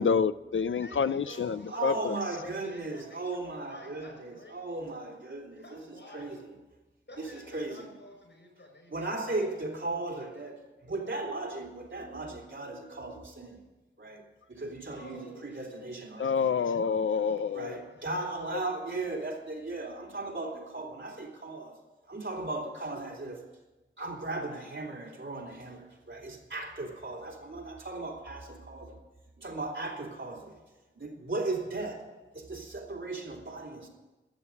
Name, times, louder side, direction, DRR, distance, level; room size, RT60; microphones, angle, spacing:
voice 1, 0.0-2.2 16.2-17.8, left 6 dB, 85° left, 15 dB, 0.5 m, -28 dB
voice 2, 0.8-5.1 5.6-6.5 7.1-9.1 9.3-9.4 14.8-15.7 17.1-18.7, left 1 dB, 70° left, 2 dB, 5.6 m, -50 dB
voice 3, 1.7-5.8 6.1-6.4 7.2-7.9 8.9-13.6 14.0-14.2 14.5-16.3 17.5-21.7 22.1-23.4 24.0-29.0 29.4-30.6 30.9-32.1 32.3-33.9, right 2 dB, 75° right, -2 dB, 2.9 m, -37 dB
13.0 x 7.8 x 9.6 m, 1.1 s
wide cardioid pair, 60°, 20 cm